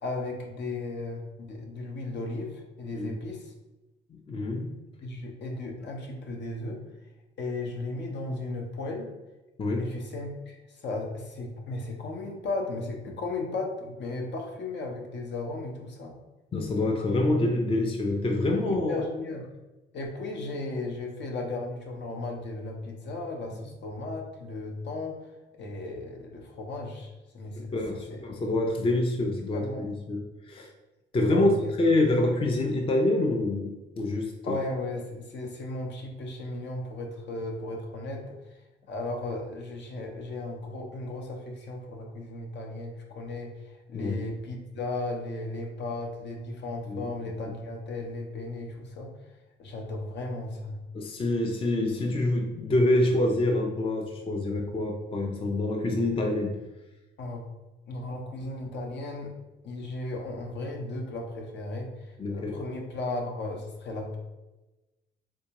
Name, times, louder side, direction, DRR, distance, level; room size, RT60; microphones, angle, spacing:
voice 1, 0.0-3.5 5.0-6.8 7.4-9.1 9.8-16.1 18.5-19.5 19.9-28.2 29.3-29.9 31.3-31.7 34.4-38.3 38.9-49.1 49.6-50.8 57.2-57.5 57.9-59.3 59.6-64.2, left 2 dB, 60° left, 2 dB, 0.8 m, -35 dB
voice 2, 4.1-4.7 9.6-9.9 16.5-19.0 27.5-30.7 31.1-31.5 31.8-34.6 43.9-44.3 46.9-47.1 47.4-47.5 50.9-56.6 62.2-62.6, left 2 dB, 25° left, 2 dB, 0.4 m, -26 dB
3.6 x 2.6 x 2.9 m, 1.1 s
cardioid pair, 90°, 20 cm